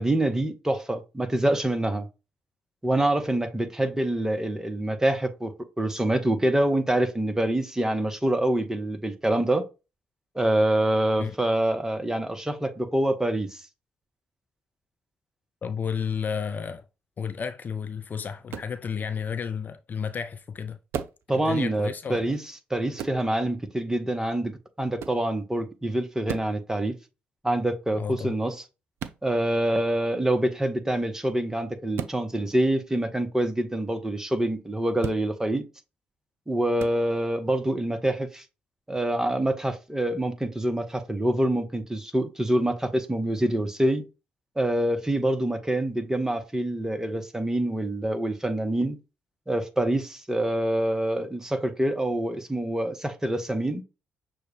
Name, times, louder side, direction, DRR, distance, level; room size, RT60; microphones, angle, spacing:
voice 1, 0.0-2.1 2.8-9.6 10.3-13.6 21.3-22.4 22.7-26.9 27.4-28.6 29.2-35.6 36.5-38.4 38.9-44.0 44.6-49.0 49.5-53.8, right 1 dB, 10° right, 0.9 m, -26 dB
voice 2, 15.6-16.8 17.2-20.8 21.3-22.3 28.0-28.3, left 6 dB, 40° left, 0.4 m, -32 dB
sound 1, 18.5-18.8 20.9-21.3 23.0-23.2 25.0-25.2 26.3-26.6 29.0-29.2 31.9-32.2 35.0-35.2 36.8-37.0, right 8 dB, 55° right, 0.4 m, -34 dB
6.2 x 2.2 x 3.2 m
figure-of-eight pair, 40°, 5 cm